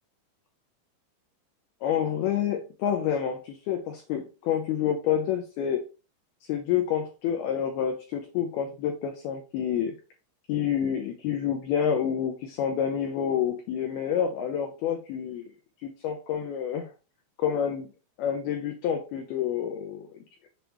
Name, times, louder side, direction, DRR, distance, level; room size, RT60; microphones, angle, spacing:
voice 1, 1.8-5.8 6.4-9.9 10.5-15.5 15.8-16.9 17.4-17.9 18.2-20.2, left 9 dB, 85° left, 4 dB, 2.2 m, -28 dB
7.5 x 5.1 x 3.1 m, 0.32 s
omnidirectional pair, 5.4 m